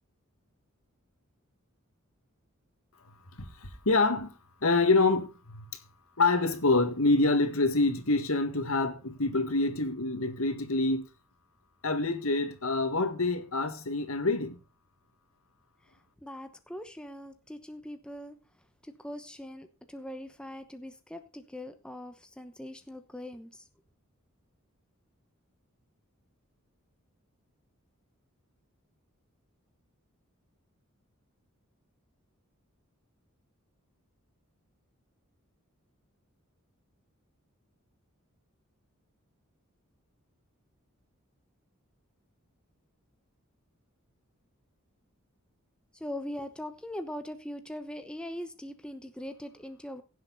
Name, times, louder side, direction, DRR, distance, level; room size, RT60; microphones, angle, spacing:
voice 1, 3.4-4.3 4.6-5.7 6.2-11.1 11.8-14.6, left 3 dB, 75° left, 2.1 m, -26 dB
voice 2, 16.2-18.3 19.0-23.5 46.0-50.0, left 1 dB, 5° left, 1.0 m, -41 dB
16.5 x 7.4 x 4.1 m
head